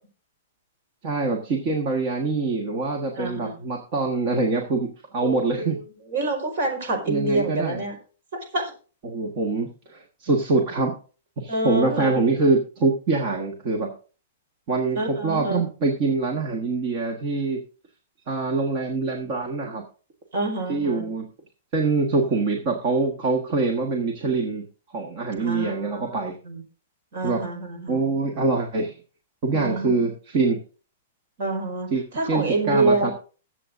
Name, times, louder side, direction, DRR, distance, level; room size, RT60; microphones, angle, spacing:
voice 1, 1.0-5.7 7.1-7.8 9.0-10.9 11.4-13.9 14.7-17.6 18.3-19.8 20.7-21.2 21.7-24.6 24.9-26.4 27.2-27.4 27.9-29.0 29.4-30.6 31.9-33.1, right 3 dB, 30° right, 2 dB, 1.4 m, -24 dB
voice 2, 3.2-3.5 5.2-5.8 6.1-8.0 8.5-8.7 11.5-12.2 14.9-15.6 20.3-21.0 25.4-26.1 26.4-26.6 27.1-28.0 29.5-30.1 31.4-31.9 32.1-33.1, right 2 dB, 50° right, 3 dB, 5.0 m, -26 dB
22.0 x 7.8 x 2.6 m, 0.37 s
hypercardioid pair, 180°, 0 cm